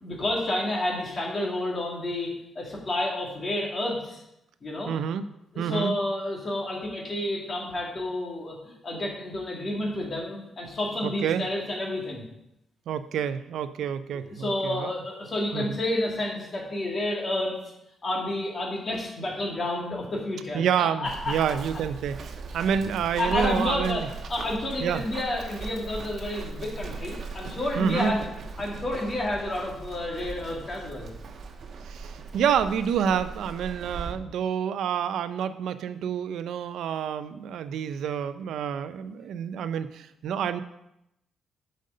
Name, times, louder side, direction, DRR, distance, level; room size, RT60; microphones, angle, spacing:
voice 1, 0.0-4.2 4.6-4.9 5.5-12.3 14.3-17.6 18.0-21.4 23.2-24.0 24.3-28.2 28.6-31.1, left 1 dB, 30° left, -1 dB, 2.2 m, -30 dB
voice 2, 4.9-5.3 5.6-5.9 11.0-11.4 12.9-14.9 15.5-15.8 20.5-24.1 24.8-25.0 27.8-28.1 31.8-40.6, right 8 dB, 80° right, 12 dB, 0.5 m, -28 dB
Run, 21.0-34.1, right 4 dB, 50° right, 1.0 m, -39 dB
7.7 x 5.2 x 6.5 m, 0.84 s
cardioid pair, 135°, 0 cm